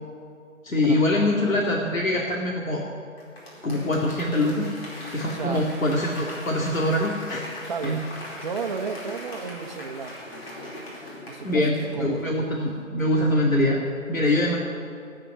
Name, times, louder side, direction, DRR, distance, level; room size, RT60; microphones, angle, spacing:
voice 1, 0.6-2.8 3.6-4.7 5.1-8.0 11.4-13.8 14.1-14.6, left 1 dB, 75° left, -1 dB, 2.3 m, -24 dB
Applause / Crowd, 3.2-12.6 13.0-13.1, left 1 dB, 45° left, 4.6 m, -40 dB
voice 2, 5.3-5.7 7.7-8.1 8.3-10.2 11.3-11.6 11.9-12.4, right 5 dB, 35° right, 6 dB, 1.1 m, -33 dB
14.0 x 8.9 x 9.8 m, 2.4 s
figure-of-eight pair, 150°, 40 cm